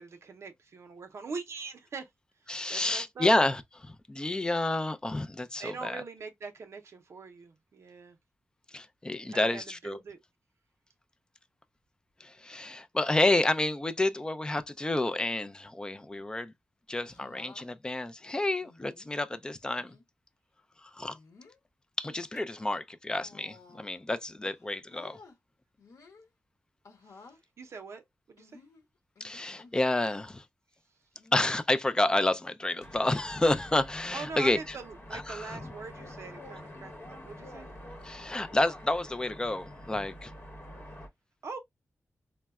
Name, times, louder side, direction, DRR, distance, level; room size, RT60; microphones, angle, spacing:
voice 1, 0.0-2.1 2.4-3.3 5.6-8.2 9.3-10.2 27.0-28.6 34.1-37.7 41.4-41.6, right 4 dB, 65° right, 0.6 m, -43 dB
voice 2, 2.5-6.0 8.7-10.0 12.2-16.5 16.9-20.0 20.8-21.2 22.0-25.2 29.2-30.4 31.3-34.6 35.1-35.6 38.0-40.3, left 2 dB, 15° left, 0.3 m, -29 dB
sound 1, 17.0-17.7 18.6-19.2 19.7-20.0 21.0-21.6 22.1-22.4 23.1-24.1 24.4-25.4 25.8-26.3 26.8-27.4 28.4-29.9 31.2-31.6 32.2-32.5 32.8-32.9 34.5-34.9 36.0-36.2, left 4 dB, 90° left, 1.0 m, -55 dB
sound 2, 32.8-41.1, left 1 dB, 45° left, 0.9 m, -47 dB
4.4 x 2.0 x 2.3 m
wide cardioid pair, 150°, 5 cm